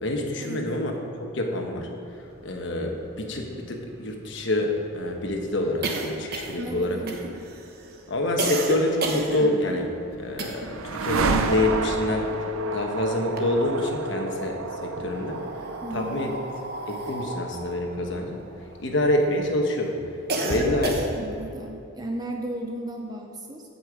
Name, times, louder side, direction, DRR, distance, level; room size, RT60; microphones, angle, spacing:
voice 1, 0.0-0.9 1.2-1.9 2.4-7.0 8.1-9.9 10.2-12.3 12.7-15.4 15.9-16.3 16.9-18.4 18.8-20.0 20.4-21.0, left 1 dB, 55° left, 2 dB, 1.2 m, -26 dB
sound 1, 2.7-2.8 3.0-3.1 3.4-10.9 11.2-12.8 13.1-14.1 14.8-19.3 19.7-21.4, right 2 dB, 45° right, 0.9 m, -32 dB
voice 2, 6.6-7.2 15.8-16.2 20.4-23.6, right 1 dB, 20° right, 2 dB, 0.5 m, -35 dB
sound 2, 9.8-19.7, right 3 dB, 80° right, 0.6 m, -31 dB
14.5 x 5.5 x 4.9 m, 2.8 s
head